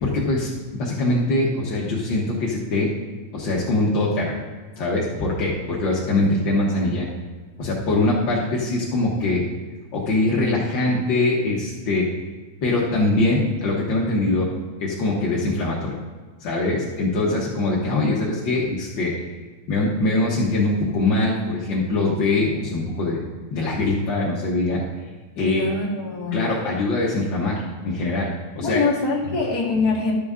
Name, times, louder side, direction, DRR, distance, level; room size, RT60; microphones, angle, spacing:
voice 1, 0.0-2.9 3.3-4.4 4.8-7.1 7.6-9.4 9.9-12.1 12.6-14.5 14.8-15.9 16.4-19.2 19.7-23.2 23.5-24.8 25.4-25.7 26.3-28.8, left 2 dB, 65° left, -4 dB, 1.1 m, -22 dB
voice 2, 25.3-26.4 28.6-30.1, left 3 dB, 35° left, -5 dB, 1.8 m, -24 dB
12.5 x 6.9 x 3.7 m, 1.4 s
omnidirectional pair, 4.1 m